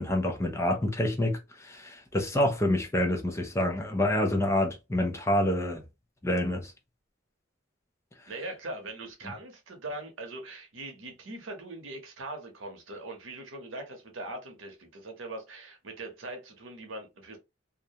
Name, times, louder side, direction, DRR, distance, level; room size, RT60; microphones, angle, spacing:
voice 1, 0.0-5.8 6.2-6.7, left 1 dB, 15° left, 0.4 m, -27 dB
voice 2, 8.3-17.4, right 2 dB, 85° right, 0.8 m, -41 dB
2.4 x 2.1 x 2.7 m
head